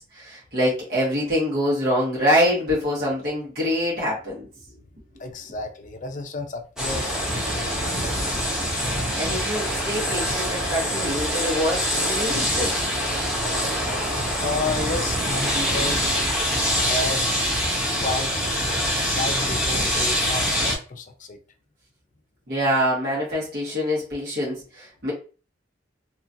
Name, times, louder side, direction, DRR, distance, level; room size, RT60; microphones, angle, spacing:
voice 1, 0.1-4.5 9.2-12.8 22.5-25.1, equal, 60° right, 1.3 m, -25 dB
voice 2, 5.2-8.3 14.4-16.2 16.8-17.2 18.0-18.9 19.1-21.4, left 3 dB, 45° left, 0.5 m, -32 dB
sound 1, 6.8-20.8, equal, 5° right, 0.8 m, -24 dB
2.9 x 2.4 x 2.6 m
head